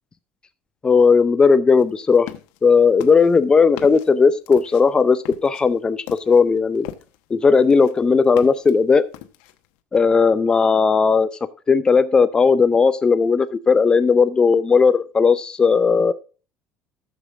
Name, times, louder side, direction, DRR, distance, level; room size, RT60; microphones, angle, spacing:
voice 1, 0.8-2.3 2.6-6.9 7.3-9.0 9.9-11.3 11.7-16.1, left 5 dB, 20° left, 14 dB, 0.5 m, -16 dB
sound 1, 1.8-2.6 3.0-7.3 7.6-8.7 9.1-9.7, left 13 dB, 85° left, 1.1 m, -39 dB
14.0 x 7.2 x 3.5 m, 0.35 s
cardioid pair, 150°, 4 cm